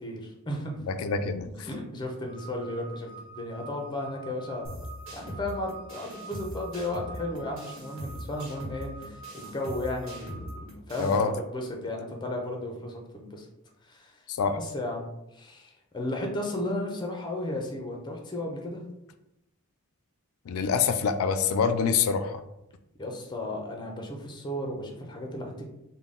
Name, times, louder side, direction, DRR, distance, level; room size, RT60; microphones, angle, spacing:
voice 1, 0.0-0.7 1.6-4.7 5.1-10.5 10.9-13.5 13.8-14.2 14.5-18.8 23.0-25.7, left 1 dB, 20° left, 2 dB, 0.6 m, -34 dB
voice 2, 0.8-1.7 11.0-11.3 14.3-14.6 20.5-22.4, left 5 dB, 70° left, 10 dB, 0.3 m, -26 dB
sound 1, 2.3-10.6, right 4 dB, 35° right, 0.7 m, -47 dB
sound 2, 4.6-11.2, equal, 60° right, 1.2 m, -41 dB
3.7 x 2.2 x 3.6 m, 0.88 s
head